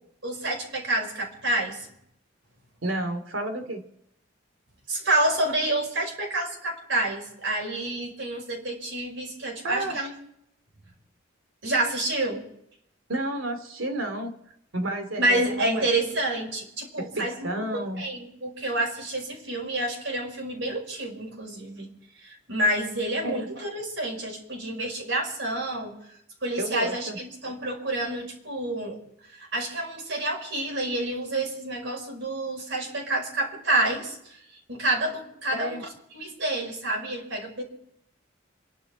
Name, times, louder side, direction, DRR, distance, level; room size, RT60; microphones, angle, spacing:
voice 1, 0.2-1.9 4.9-10.1 11.6-12.4 15.2-21.9 22.2-26.0 26.4-29.0 29.4-34.2 34.7-35.9 36.1-37.6, right 1 dB, 65° right, 0 dB, 5.5 m, -28 dB
voice 2, 2.8-3.8 9.6-10.0 13.1-14.4 14.7-15.9 17.0-18.0 23.2-23.5 26.6-27.2 35.5-35.8, right 1 dB, 85° right, 7 dB, 2.8 m, -31 dB
28.5 x 11.5 x 4.4 m, 0.76 s
head